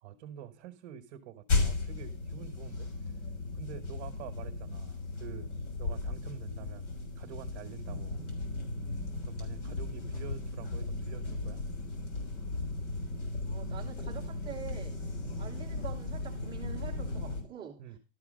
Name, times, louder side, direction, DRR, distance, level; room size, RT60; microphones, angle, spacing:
voice 1, 0.0-3.2 3.5-8.2 9.3-11.6 15.2-15.5 17.8-18.0, right 10 dB, 30° right, 1.2 m, -47 dB
sound 1, 1.5-17.4, left 3 dB, 60° left, 3.6 m, -36 dB
voice 2, 13.4-15.0 15.4-18.0, right 8 dB, 10° right, 0.9 m, -46 dB
12.5 x 4.8 x 6.3 m
hypercardioid pair, 155°, 40 cm